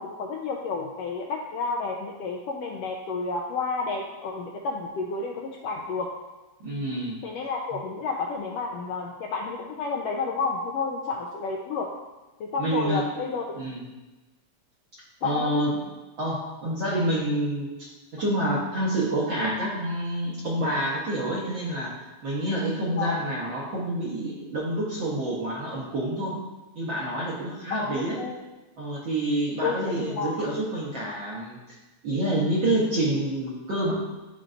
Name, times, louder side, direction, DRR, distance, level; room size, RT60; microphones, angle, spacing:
voice 1, 0.0-6.1 7.2-11.9 12.4-13.4 15.2-15.7 23.0-23.3 27.7-28.4 29.6-30.3, left 4 dB, 80° left, 0 dB, 1.5 m, -30 dB
voice 2, 6.6-7.2 12.6-13.1 13.5-13.8 15.2-15.8 16.2-21.9 22.2-26.4 26.7-28.2 28.8-31.8 32.0-33.9, right 1 dB, 55° right, -6 dB, 1.4 m, -28 dB
10.5 x 4.5 x 2.6 m, 1.1 s
omnidirectional pair, 3.3 m